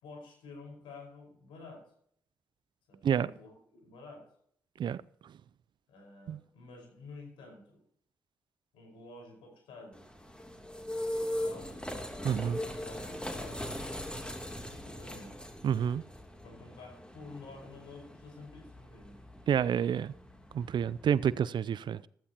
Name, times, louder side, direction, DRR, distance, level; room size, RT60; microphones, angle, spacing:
voice 1, 0.0-1.8 2.9-4.2 4.8-4.9 5.9-7.8 8.7-10.1 11.0-11.8 12.6-13.7 14.6-15.4 16.4-19.2, left 3 dB, 80° left, 4.9 m, -50 dB
sound 1, 9.9-21.4, left 1 dB, 10° left, 3.0 m, -40 dB
voice 2, 12.2-12.6 15.6-16.0 19.5-20.1 20.5-22.1, right 8 dB, 60° right, 0.5 m, -29 dB
15.0 x 13.5 x 2.9 m
hypercardioid pair, 40°, 9 cm